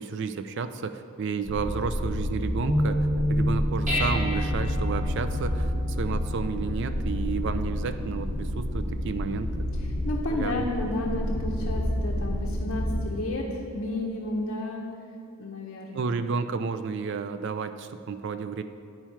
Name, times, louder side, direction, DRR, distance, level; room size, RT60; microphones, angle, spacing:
voice 1, 0.0-9.5 10.3-10.7 15.9-18.6, right 5 dB, 55° right, 10 dB, 0.3 m, -31 dB
sound 1, 1.4-13.1, left 1 dB, 85° right, 1.8 m, -30 dB
sound 2, 2.6-8.9, equal, 10° left, 1.3 m, -31 dB
Dishes pots and pans, 3.2-12.4, left 1 dB, 35° right, 1.7 m, -39 dB
voice 2, 9.8-14.9 15.4-16.2, left 1 dB, 55° left, -2 dB, 0.6 m, -32 dB
10.0 x 4.5 x 4.5 m, 2.7 s
head